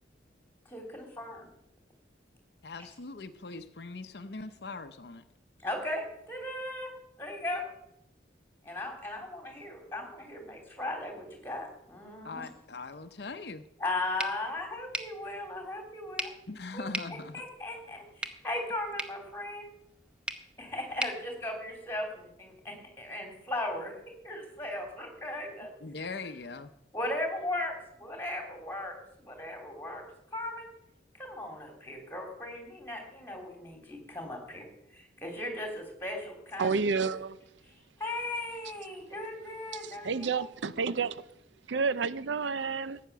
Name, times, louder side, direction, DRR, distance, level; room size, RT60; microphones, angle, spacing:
voice 1, 0.7-1.5 5.6-6.9 7.2-7.6 8.6-12.5 13.8-16.3 16.7-16.8 17.1-19.7 20.6-25.7 26.9-30.1 30.3-30.7 31.1-34.6 34.9-37.1 38.0-40.5, left 1 dB, 10° left, 3.2 m, -37 dB
voice 2, 2.6-5.2 12.2-13.6 16.5-17.4 25.8-26.7, left 3 dB, 65° left, 0.7 m, -41 dB
sound 1, 14.2-22.2, right 1 dB, 5° right, 0.8 m, -42 dB
voice 3, 36.6-37.4 39.7-41.2 41.7-43.0, right 5 dB, 80° right, 0.6 m, -30 dB
15.0 x 9.4 x 6.9 m
head